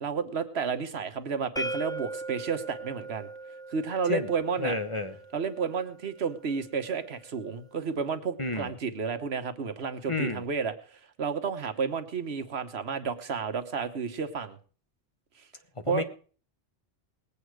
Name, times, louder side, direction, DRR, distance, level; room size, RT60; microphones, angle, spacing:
voice 1, 0.0-3.3 3.7-4.8 5.3-14.6 15.4-15.5 15.9-16.0, right 6 dB, 85° right, 9 dB, 1.4 m, -31 dB
sound 1, 1.6-7.4, right 2 dB, 5° left, 0.4 m, -40 dB
voice 2, 4.6-5.2 8.4-8.7 10.1-10.4 15.8-16.0, left 3 dB, 30° left, 9 dB, 1.0 m, -30 dB
20.0 x 8.6 x 4.7 m, 0.40 s
omnidirectional pair, 1.0 m